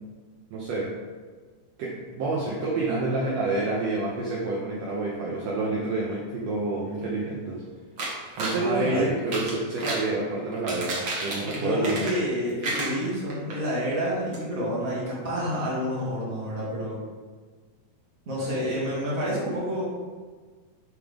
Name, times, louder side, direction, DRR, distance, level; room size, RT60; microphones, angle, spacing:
voice 1, 0.5-0.9 1.8-7.6 8.4-12.1, right 2 dB, 75° right, -4 dB, 1.5 m, -28 dB
sound 1, 8.0-8.6 9.2-10.1 10.5-12.3 12.6-13.5 13.9-14.0 14.3-14.4, right 2 dB, 55° right, 1.3 m, -31 dB
voice 2, 8.6-9.1 11.4-17.0 18.3-19.8, equal, 30° right, -7 dB, 2.0 m, -28 dB
10.5 x 3.7 x 3.5 m, 1.5 s
omnidirectional pair, 4.1 m